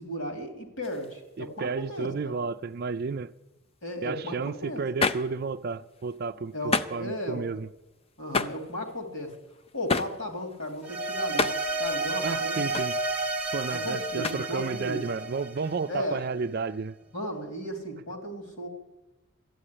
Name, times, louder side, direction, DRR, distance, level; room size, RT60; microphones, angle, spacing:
voice 1, 0.0-2.4 3.8-4.8 6.5-7.4 8.2-9.3 9.7-11.5 11.8-12.7 13.7-15.0 15.9-16.2 17.1-18.7, equal, 70° left, 3.0 m, -35 dB
sound 1, 0.8-1.6 5.0-6.2 6.5-7.1 7.7-7.8 8.1-13.8 14.2-14.4, left 4 dB, 25° left, 0.5 m, -32 dB
voice 2, 1.4-3.3 4.0-7.7 12.2-13.0 13.5-17.0, right 4 dB, 45° right, 0.4 m, -32 dB
sound 2, 10.8-16.2, right 2 dB, 5° right, 0.9 m, -31 dB
13.0 x 8.8 x 9.9 m
head